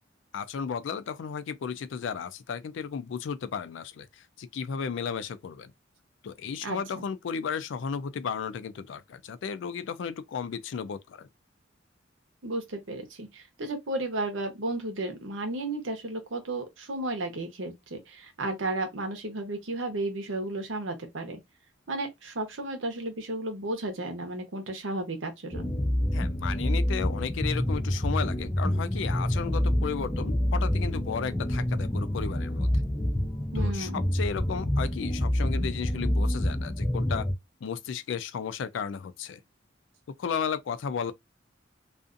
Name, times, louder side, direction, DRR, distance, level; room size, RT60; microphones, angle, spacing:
voice 1, 0.3-4.1 4.4-5.7 6.2-11.3 26.1-32.7 33.5-37.3 37.6-39.4 40.2-41.1, left 6 dB, 75° left, 0.3 m, -34 dB
voice 2, 6.6-7.1 12.4-21.4 21.9-25.7 33.5-34.0, right 2 dB, 85° right, 0.9 m, -33 dB
sound 1, 25.5-37.3, left 1 dB, 10° left, 0.4 m, -27 dB
2.5 x 2.4 x 2.5 m
head